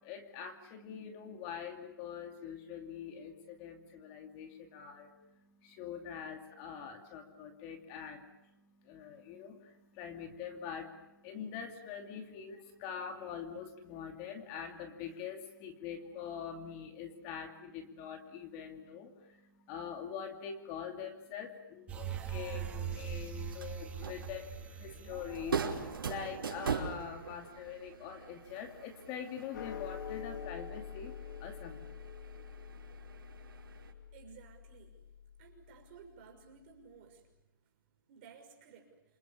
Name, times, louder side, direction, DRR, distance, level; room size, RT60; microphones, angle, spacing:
voice 1, 0.0-31.8, left 7 dB, 25° left, 5 dB, 2.5 m, -44 dB
sound 1, 21.9-27.5 27.9-28.0, right 8 dB, 10° right, 1.9 m, -42 dB
sound 2, 23.4-33.9, right 6 dB, 75° right, 5.3 m, -42 dB
sound 3, 29.5-36.1, left 7 dB, 60° left, 3.5 m, -46 dB
voice 2, 34.1-35.0 35.4-37.3 38.1-39.0, right 6 dB, 30° right, 2 dB, 6.3 m, -56 dB
28.5 x 27.0 x 7.3 m, 0.94 s
hypercardioid pair, 165°, 12 cm